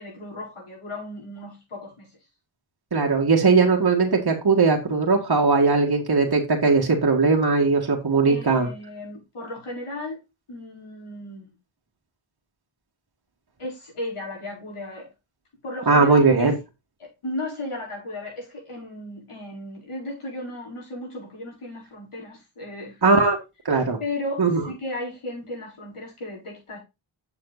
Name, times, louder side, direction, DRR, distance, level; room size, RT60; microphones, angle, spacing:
voice 1, 0.0-2.1 8.3-10.2 10.5-11.5 13.6-15.1 15.6-16.6 17.0-23.0 24.0-26.8, left 1 dB, 85° left, 4.7 m, -35 dB
voice 2, 2.9-8.7 15.9-16.5 23.0-23.4 23.7-24.0 24.4-24.6, right 4 dB, 50° right, 2.0 m, -19 dB
7.2 x 6.9 x 4.1 m
cardioid pair, 45°, 50 cm